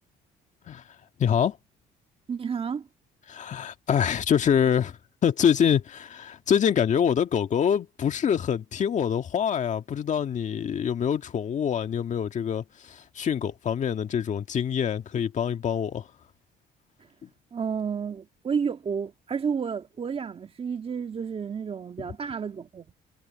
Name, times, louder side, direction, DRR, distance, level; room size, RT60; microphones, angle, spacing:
voice 1, 1.2-1.6 3.3-16.1 17.2-17.3, left 8 dB, 45° left, 1.7 m, -25 dB
voice 2, 2.3-2.9 17.5-22.9, right 6 dB, 35° right, 2.0 m, -31 dB
cardioid pair, 110°, 17 cm